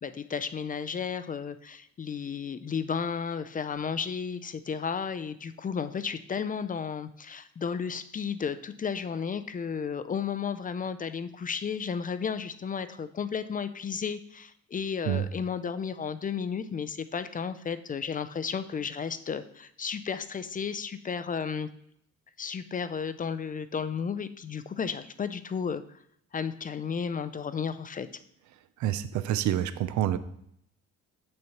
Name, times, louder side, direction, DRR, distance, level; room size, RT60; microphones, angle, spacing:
voice 1, 0.0-21.7 22.4-25.8 26.3-28.1, left 6 dB, 30° left, 12 dB, 0.4 m, -33 dB
voice 2, 28.8-30.2, right 11 dB, 70° right, 13 dB, 0.5 m, -27 dB
6.9 x 6.3 x 3.0 m, 0.71 s
cardioid pair, 90°, 30 cm